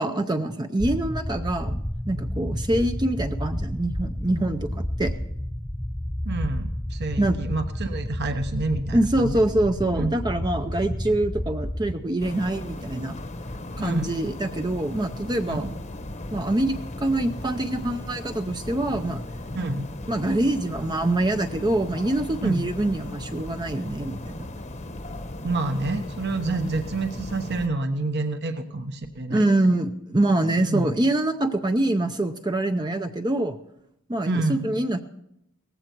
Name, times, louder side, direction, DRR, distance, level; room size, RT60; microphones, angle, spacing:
voice 1, 0.0-5.1 7.2-7.4 8.9-13.2 13.8-15.7 16.3-19.2 20.1-24.5 26.6-26.7 29.3-33.6 34.1-35.0, right 1 dB, 20° right, 7 dB, 0.6 m, -25 dB
sound 1, 0.8-11.9, equal, 5° left, 0.8 m, -31 dB
voice 2, 6.2-9.4 9.9-10.1 13.8-14.1 15.5-15.7 19.5-19.9 22.4-22.7 25.4-29.5 30.7-30.8 34.3-34.6, right 2 dB, 50° right, 7 dB, 1.0 m, -28 dB
sound 2, 12.2-27.7, left 1 dB, 30° left, 1.0 m, -37 dB
18.0 x 15.0 x 4.6 m, 0.79 s
head